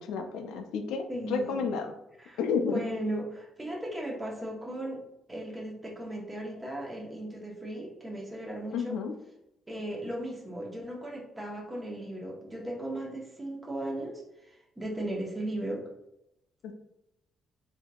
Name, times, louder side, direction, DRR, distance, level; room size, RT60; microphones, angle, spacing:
voice 1, 0.0-1.9 2.4-2.8 8.7-9.1 16.6-16.7, left 5 dB, 90° left, 6 dB, 0.4 m, -31 dB
voice 2, 1.1-1.7 2.2-2.4 2.7-5.0 5.3-9.0 9.7-15.9, right 1 dB, 15° right, -2 dB, 0.9 m, -37 dB
3.6 x 2.7 x 2.3 m, 0.84 s
cardioid pair, 90°, 0 cm